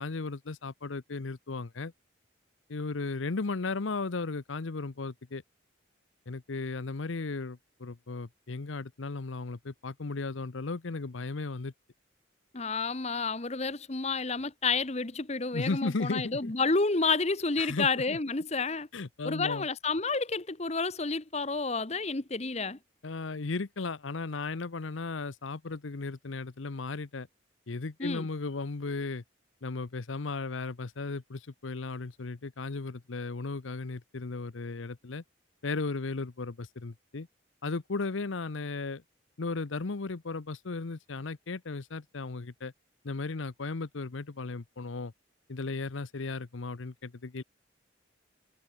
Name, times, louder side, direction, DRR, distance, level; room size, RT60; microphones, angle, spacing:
voice 1, 0.0-1.9 2.7-5.4 6.3-11.7 15.5-16.5 17.6-18.2 18.9-19.7 23.0-27.3 27.7-29.2 29.6-35.2 35.6-37.3 37.6-39.0 39.4-42.7 43.0-45.1 45.5-47.4, left 3 dB, 80° left, 0.8 m, -35 dB
voice 2, 12.5-18.9 19.2-22.8 28.0-28.3, left 4 dB, 35° left, 1.0 m, -30 dB
head